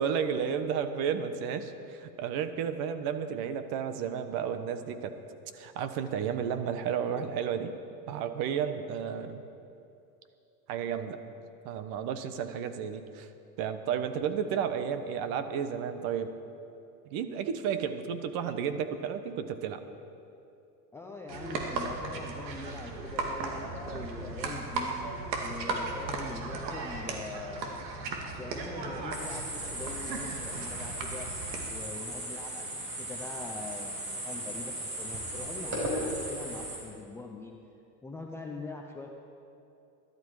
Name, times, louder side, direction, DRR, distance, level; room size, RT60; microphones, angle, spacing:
voice 1, 0.0-5.2 5.5-7.7 8.1-9.4 10.7-11.2 11.6-13.3 13.6-16.3 17.1-19.8, right 7 dB, 45° right, 10 dB, 1.2 m, -32 dB
voice 2, 20.9-24.9 25.4-27.8 28.4-31.3 31.7-37.6 38.0-39.1, left 3 dB, 5° left, 1 dB, 0.4 m, -43 dB
sound 1, 21.3-31.7, right 3 dB, 85° right, 2.3 m, -36 dB
sound 2, 29.1-36.8, right 1 dB, 25° right, 4.9 m, -37 dB
21.5 x 12.5 x 4.8 m, 2.7 s
supercardioid pair, 130°, 50 cm